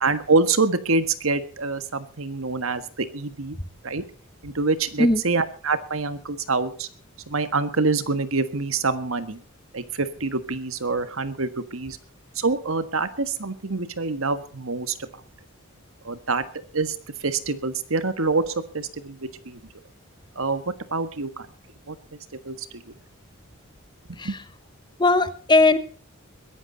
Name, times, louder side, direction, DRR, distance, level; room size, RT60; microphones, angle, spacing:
voice 1, 0.0-3.6 3.8-4.0 4.4-6.9 7.3-9.4 9.7-12.0 12.4-14.9 16.0-16.4 16.7-17.0 17.2-19.6 20.3-21.5 21.9-22.0 22.4-22.7 24.1-24.3, right 3 dB, 70° right, 12 dB, 1.5 m, -26 dB
voice 2, 25.0-25.8, left 2 dB, 20° left, 13 dB, 1.0 m, -18 dB
21.5 x 11.5 x 4.0 m, 0.40 s
head